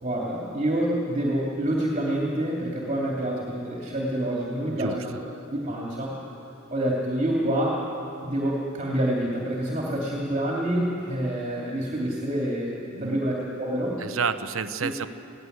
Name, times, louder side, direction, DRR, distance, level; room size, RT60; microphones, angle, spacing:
voice 1, 0.0-5.2 5.5-6.2 6.7-7.8 8.2-12.7 13.0-14.0 14.8-14.9, right 1 dB, 35° right, -3 dB, 2.6 m, -27 dB
voice 2, 4.7-5.0 12.8-13.3 14.0-15.1, right 5 dB, 85° right, 12 dB, 0.8 m, -30 dB
23.5 x 17.0 x 8.0 m, 2.8 s
head